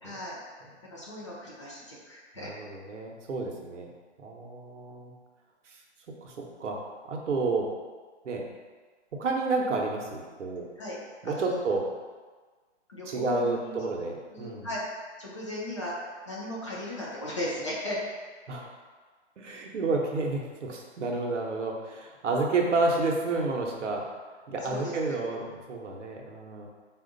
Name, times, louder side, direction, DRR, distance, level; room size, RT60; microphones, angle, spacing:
voice 1, 0.0-0.4 0.9-2.5 10.8-11.0 11.2-11.5 12.9-13.8 14.3-14.8 15.2-18.0 24.6-25.2, left 1 dB, 25° left, -6 dB, 0.6 m, -36 dB
voice 2, 2.4-3.9 4.2-5.1 6.2-6.3 6.6-6.8 7.1-7.7 8.2-8.4 9.2-10.7 11.2-11.9 13.1-14.7 18.5-18.7 19.4-24.1 24.5-26.7, right 3 dB, 85° right, 0 dB, 1.0 m, -30 dB
4.3 x 2.4 x 3.8 m, 1.5 s
hypercardioid pair, 180°, 35 cm